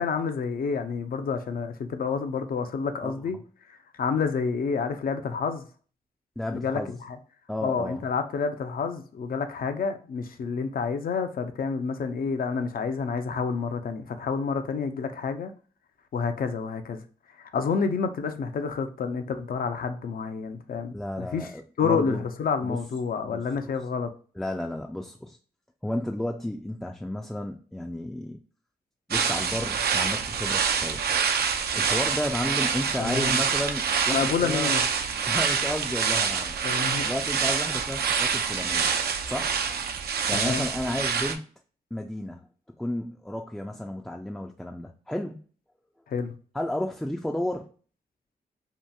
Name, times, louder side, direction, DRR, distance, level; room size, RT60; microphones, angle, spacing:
voice 1, 0.0-3.4 3.7-5.7 6.5-7.2 7.6-15.5 16.1-17.0 17.4-21.5 21.8-24.1 33.0-33.4 34.1-34.8 36.6-37.1 40.3-40.6 46.1-46.3, left 5 dB, 60° left, 8 dB, 0.5 m, -29 dB
voice 2, 3.0-3.4 6.4-7.0 7.5-8.0 20.9-22.2 22.6-22.8 23.2-23.7 24.4-25.4 25.8-28.4 29.1-31.0 31.7-34.7 35.3-36.6 37.0-39.0 39.2-39.6 40.3-41.4 41.9-42.5 42.8-45.4 46.5-47.7, left 1 dB, 5° left, 2 dB, 0.3 m, -32 dB
sound 1, 29.1-41.4, right 6 dB, 70° right, 0.4 m, -26 dB
2.8 x 2.4 x 2.3 m, 0.41 s
cardioid pair, 55°, 17 cm